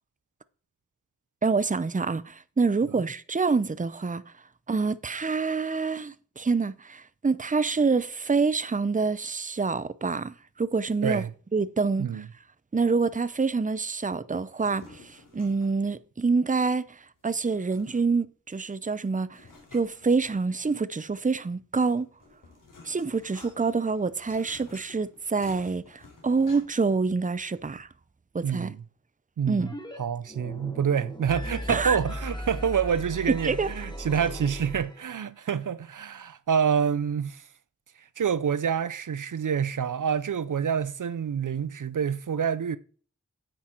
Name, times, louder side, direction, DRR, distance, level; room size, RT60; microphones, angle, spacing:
voice 1, 1.4-4.2 4.7-11.2 11.5-12.2 12.7-19.4 19.7-22.1 22.8-27.9 28.3-28.7 29.5-29.7 31.7-32.0 33.3-33.7, right 4 dB, 25° right, 0.7 m, -26 dB
sound 1, 14.5-15.9 17.3-18.3 19.3-20.7 21.9-26.9, left 3 dB, 75° left, 3.9 m, -52 dB
voice 2, 28.4-28.8 29.4-29.7 30.0-37.5 38.0-42.8, right 7 dB, 75° right, 0.6 m, -27 dB
sound 2, 29.6-30.0 30.2-35.2, equal, 15° left, 2.5 m, -37 dB
10.0 x 8.4 x 4.5 m
wide cardioid pair, 55°, 32 cm